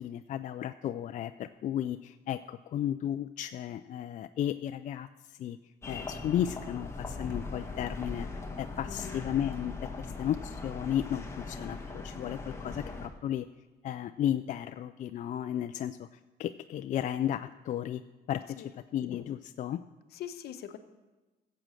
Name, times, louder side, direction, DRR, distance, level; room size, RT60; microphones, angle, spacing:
voice 1, 0.0-5.6 5.9-13.5 13.8-18.0 18.3-19.8, left 10 dB, 50° left, 10 dB, 0.4 m, -34 dB
sound 1, 5.8-13.1, left 3 dB, 15° left, 1.6 m, -40 dB
voice 2, 8.9-9.2 18.6-18.7 20.1-20.8, left 10 dB, 70° left, 9 dB, 1.0 m, -42 dB
14.0 x 7.6 x 6.3 m, 1.2 s
cardioid pair, 110°, 17 cm